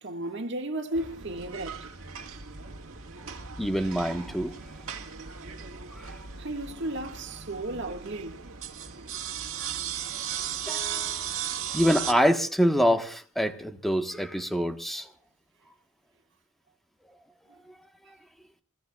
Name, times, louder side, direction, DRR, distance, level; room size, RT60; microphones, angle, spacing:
voice 1, 0.0-1.9 6.4-8.5, right 1 dB, 60° right, 1.8 m, -34 dB
sound 1, 0.9-12.1, right 8 dB, 75° right, 1.9 m, -37 dB
voice 2, 3.6-4.6 5.9-6.1 10.7-11.3 11.7-15.1, equal, ahead, 1.3 m, -26 dB
27.5 x 18.0 x 2.4 m
head